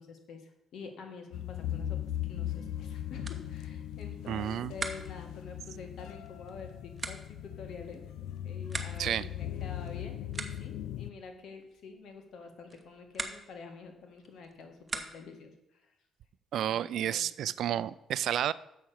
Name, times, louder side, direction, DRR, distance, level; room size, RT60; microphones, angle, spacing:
voice 1, 0.0-8.0 8.4-15.9 16.7-17.2, left 4 dB, 70° left, 4 dB, 1.7 m, -47 dB
sound 1, 1.3-11.1, left 11 dB, 90° left, 0.4 m, -39 dB
sound 2, 2.8-15.5, right 3 dB, 25° right, 1.0 m, -45 dB
voice 2, 4.3-4.7 9.0-9.3 16.5-18.5, right 10 dB, 75° right, 17 dB, 0.3 m, -31 dB
7.3 x 5.8 x 6.5 m, 0.84 s
cardioid pair, 90°, 0 cm